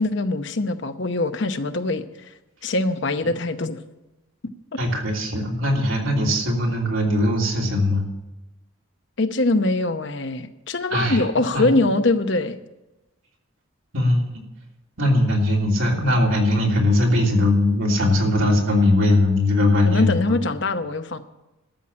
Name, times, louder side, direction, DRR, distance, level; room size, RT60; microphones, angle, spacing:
voice 1, 0.0-2.0 2.6-3.8 4.7-4.8 9.2-12.6 19.8-21.2, left 2 dB, 60° left, 9 dB, 0.8 m, -23 dB
voice 2, 4.8-8.0 10.9-11.2 11.5-11.7 13.9-14.4 15.0-20.4, left 1 dB, 75° right, -1 dB, 3.1 m, -20 dB
12.5 x 7.3 x 8.8 m, 1.0 s
head